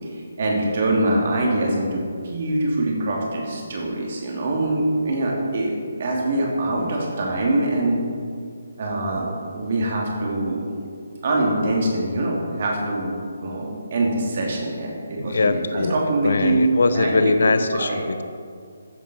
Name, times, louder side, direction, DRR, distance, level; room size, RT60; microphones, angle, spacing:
voice 1, 0.0-5.7 6.0-8.0 8.8-10.7 11.2-13.2 13.4-17.4 17.7-18.0, right 2 dB, 40° right, -1 dB, 3.0 m, -24 dB
voice 2, 15.2-15.9 16.2-18.2, left 3 dB, 55° left, 10 dB, 1.0 m, -21 dB
14.0 x 11.0 x 4.6 m, 2.2 s
figure-of-eight pair, 145°, 0 cm